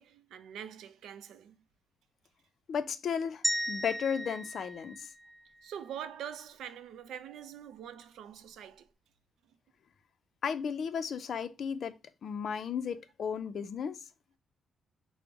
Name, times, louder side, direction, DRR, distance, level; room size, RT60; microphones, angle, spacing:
voice 1, 0.0-1.6 5.6-8.9, right 9 dB, 90° right, 0.5 m, -44 dB
voice 2, 2.7-5.1 10.4-12.0 12.2-14.0, left 7 dB, 50° left, 0.4 m, -34 dB
sound 1, 3.4-5.7, right 1 dB, 10° right, 0.4 m, -35 dB
5.2 x 2.1 x 4.6 m
cardioid pair, 165°, 0 cm